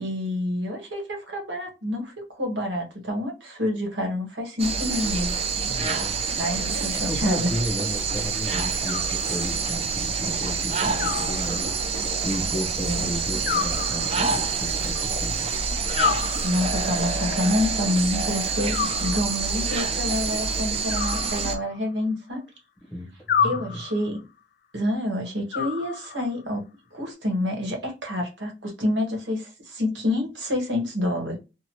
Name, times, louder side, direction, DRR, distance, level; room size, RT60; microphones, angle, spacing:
voice 1, 0.0-5.3 6.4-7.5 12.8-13.1 16.4-22.4 23.4-24.2 24.7-26.6 26.9-31.4, left 1 dB, 85° right, 1.1 m, -28 dB
sound 1, 4.6-21.6, right 4 dB, 35° right, 0.5 m, -27 dB
voice 2, 5.7-6.2 6.6-11.7 12.2-15.5 22.9-23.8, equal, 5° left, 0.8 m, -33 dB
Animal, 8.8-9.7 11.0-12.0 13.5-14.5 16.0-17.0 18.7-19.6 20.9-22.0 23.3-24.2 25.5-26.4, left 7 dB, 50° left, 0.3 m, -30 dB
2.8 x 2.1 x 2.9 m
head